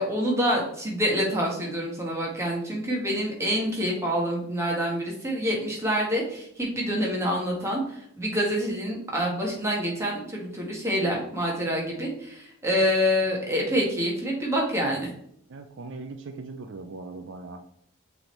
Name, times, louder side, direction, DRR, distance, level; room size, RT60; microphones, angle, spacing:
voice 1, 0.0-15.1, equal, 10° right, -2 dB, 1.5 m, -27 dB
voice 2, 15.5-17.7, right 3 dB, 55° right, 6 dB, 0.5 m, -40 dB
6.1 x 3.5 x 4.4 m, 0.70 s
head